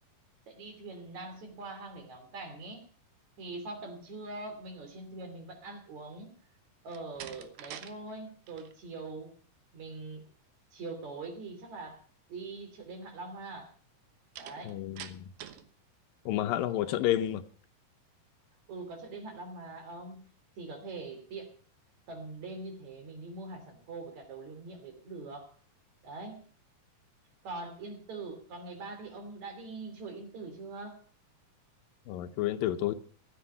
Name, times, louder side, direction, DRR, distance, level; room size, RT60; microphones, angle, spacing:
voice 1, 0.5-2.8 3.4-6.3 6.8-9.3 9.7-10.2 10.7-12.0 12.3-13.7 14.4-14.8 16.7-17.1 18.7-20.3 20.6-21.6 22.1-25.5 26.0-26.5 27.4-31.0, right 3 dB, 55° right, 4.1 m, -43 dB
Slam, 6.8-7.9 8.3-8.7 14.4-15.7, right 10 dB, 80° right, 2.9 m, -46 dB
voice 2, 14.7-15.3 16.3-17.4 32.1-32.9, left 12 dB, 80° left, 2.5 m, -30 dB
15.0 x 12.5 x 5.6 m
omnidirectional pair, 4.1 m